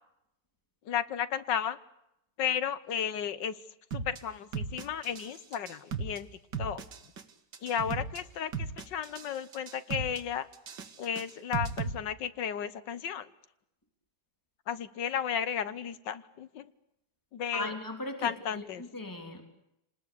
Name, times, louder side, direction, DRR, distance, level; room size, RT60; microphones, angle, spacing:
voice 1, 0.9-1.8 2.4-3.6 3.9-6.3 6.6-6.8 7.6-10.5 11.0-13.3 14.7-16.7 17.3-17.7 18.2-18.8, left 8 dB, 75° left, 15 dB, 1.8 m, -33 dB
sound 1, 3.9-4.2 4.5-5.3 5.5-6.2 6.5-7.2 7.5-8.2 8.5-9.3 9.5-10.2 10.5-11.9, right 5 dB, 70° right, 2.4 m, -35 dB
voice 2, 17.5-19.4, left 2 dB, 10° left, 5 dB, 3.3 m, -38 dB
28.5 x 20.0 x 8.4 m, 0.84 s
omnidirectional pair, 2.0 m